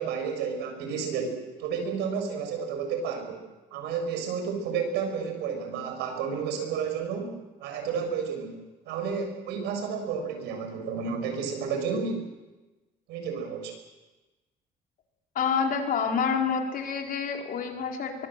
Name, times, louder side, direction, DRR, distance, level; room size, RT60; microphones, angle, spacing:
voice 1, 0.0-3.4 3.7-7.3 7.6-8.6 8.9-12.2 13.1-13.7, right 6 dB, 90° right, 5 dB, 7.0 m, -31 dB
voice 2, 15.3-18.3, left 6 dB, 55° left, 1 dB, 4.8 m, -28 dB
23.5 x 22.5 x 7.8 m, 1.1 s
cardioid pair, 110°, 17 cm